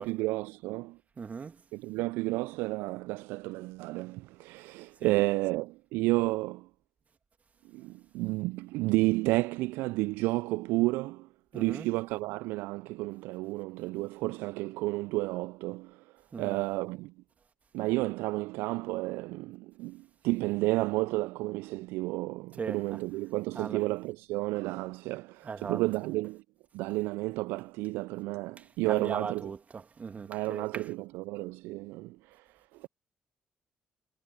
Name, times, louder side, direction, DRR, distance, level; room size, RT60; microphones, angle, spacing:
voice 1, 0.0-1.0 1.7-6.7 7.7-17.1 17.7-26.4 26.7-29.5 30.3-32.9, right 21 dB, 75° right, 0.4 m, -31 dB
voice 2, 1.2-1.6 5.0-5.2 11.5-11.9 16.3-16.6 22.6-23.0 23.6-23.8 25.4-25.8 28.6-30.9, right 5 dB, 40° right, 1.9 m, -39 dB
hypercardioid pair, 45°, 4 cm